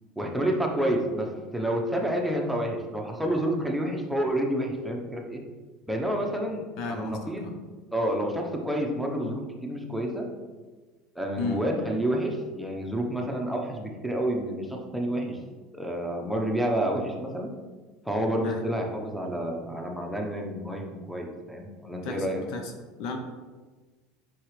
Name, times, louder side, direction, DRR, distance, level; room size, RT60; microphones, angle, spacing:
voice 1, 0.2-5.4 5.9-7.5 7.9-10.3 11.1-15.4 15.7-17.5 18.0-22.4, right 1 dB, 5° right, 1 dB, 0.9 m, -29 dB
voice 2, 6.8-7.5 11.4-11.6 18.4-18.6 22.0-22.7 23.0-23.2, left 3 dB, 65° left, 5 dB, 0.8 m, -34 dB
5.8 x 4.9 x 3.3 m, 1.3 s
supercardioid pair, 95°, 0 cm